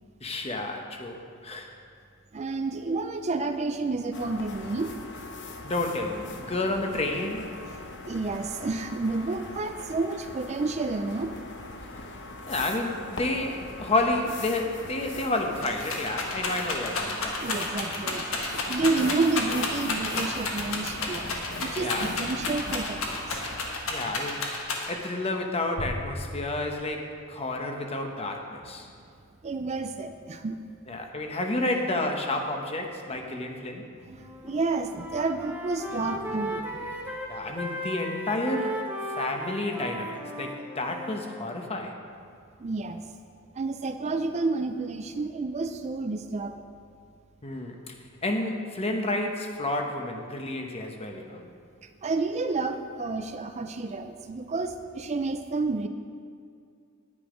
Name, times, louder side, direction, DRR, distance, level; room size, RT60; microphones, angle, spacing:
voice 1, 0.2-1.7 5.6-7.5 12.5-17.4 21.8-22.1 23.9-24.4 24.9-28.9 30.9-33.9 37.3-38.9 39.2-42.0 47.4-47.9 48.2-51.4, left 2 dB, 30° left, 3 dB, 0.9 m, -30 dB
voice 2, 2.3-4.9 7.7-7.8 8.1-11.3 17.4-23.4 29.4-30.6 34.0-37.1 42.6-43.0 43.6-46.7 51.8-55.9, right 3 dB, 30° right, 8 dB, 0.4 m, -30 dB
sound 1, 4.1-23.7, left 2 dB, 55° left, 0.9 m, -41 dB
Rattle, 14.8-14.9 15.2-25.1 25.8-26.4, left 3 dB, 80° left, 1.5 m, -31 dB
Wind instrument woodwind instrument, 34.1-34.5 34.8-41.4, equal, 10° right, 1.0 m, -36 dB
9.9 x 9.6 x 5.1 m, 2.3 s
head